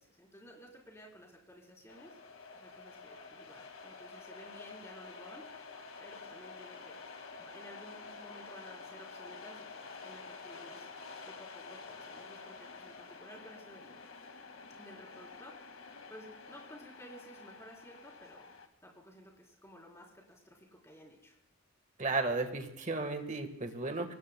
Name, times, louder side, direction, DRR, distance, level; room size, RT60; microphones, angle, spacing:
voice 1, 0.0-2.2 2.5-5.5 6.0-14.0 14.8-18.5 18.8-21.4, equal, 15° left, -2 dB, 3.8 m, -54 dB
sound 1, 1.9-18.7, left 4 dB, 80° left, 1.9 m, -49 dB
voice 2, 22.0-24.1, right 3 dB, 35° right, 7 dB, 1.5 m, -34 dB
24.5 x 19.5 x 2.2 m, 0.84 s
head